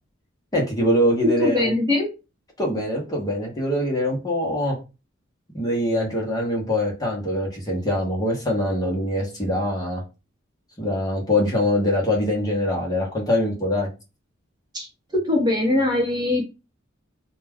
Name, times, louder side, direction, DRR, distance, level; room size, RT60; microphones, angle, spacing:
voice 1, 0.5-1.7 2.6-4.8 5.5-10.0 10.8-13.9, left 1 dB, 20° left, -2 dB, 0.8 m, -23 dB
voice 2, 1.4-2.1 14.7-14.9 15.1-16.4, left 2 dB, 20° right, -1 dB, 0.8 m, -21 dB
2.2 x 2.2 x 3.4 m, 0.28 s
head